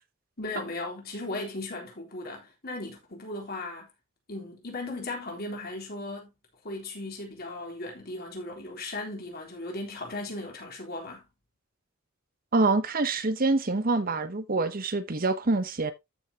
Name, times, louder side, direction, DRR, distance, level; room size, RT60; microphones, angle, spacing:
voice 1, 0.4-3.9 4.3-6.3 6.6-11.2, left 2 dB, 45° left, 3.8 m, -37 dB
voice 2, 12.5-15.9, right 3 dB, 45° right, 0.9 m, -26 dB
13.5 x 6.5 x 2.9 m
head